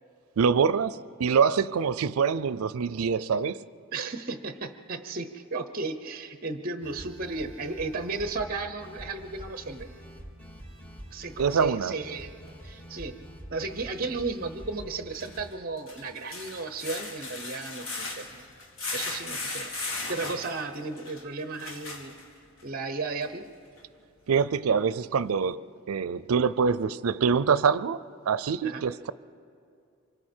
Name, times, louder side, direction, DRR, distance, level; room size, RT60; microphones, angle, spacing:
voice 1, 0.4-3.6 11.4-12.0 24.3-25.6 25.9-29.1, right 6 dB, 85° right, 0.5 m, -25 dB
voice 2, 3.9-9.9 11.1-12.3 12.6-13.2 13.5-18.5 18.9-19.8 20.1-22.2 22.6-23.4 28.6-28.8, right 3 dB, 40° right, 0.8 m, -34 dB
sound 1, 6.8-15.4, equal, 10° left, 2.1 m, -45 dB
sound 2, 12.5-12.6 15.0-22.6 23.2-23.3 23.8-23.9, left 3 dB, 70° left, 2.0 m, -37 dB
25.5 x 24.0 x 4.5 m
head